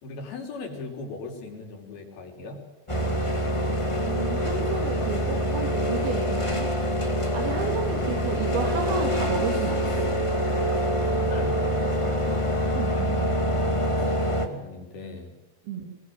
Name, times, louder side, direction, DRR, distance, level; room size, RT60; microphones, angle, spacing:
voice 1, 0.0-2.6 11.2-12.5 13.4-15.3, left 3 dB, 70° left, 3 dB, 5.1 m, -39 dB
sound 1, 2.9-14.5, equal, 25° left, 0.7 m, -25 dB
voice 2, 4.0-6.7 7.3-10.1 12.7-13.3 15.7-16.0, right 5 dB, 70° right, 1 dB, 4.9 m, -32 dB
24.0 x 21.0 x 7.8 m, 1.0 s
omnidirectional pair, 4.6 m